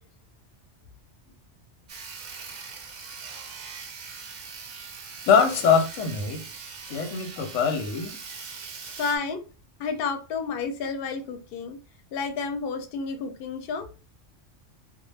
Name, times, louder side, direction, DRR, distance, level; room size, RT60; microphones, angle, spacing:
Sawing, 1.9-9.2, right 5 dB, 60° right, 0.5 m, -41 dB
voice 1, 5.3-6.4 6.9-8.2, left 6 dB, 90° left, 0.9 m, -23 dB
voice 2, 9.0-9.4 9.8-11.8 12.1-13.9, left 5 dB, 60° left, 0.7 m, -30 dB
2.2 x 2.0 x 3.1 m
omnidirectional pair, 1.3 m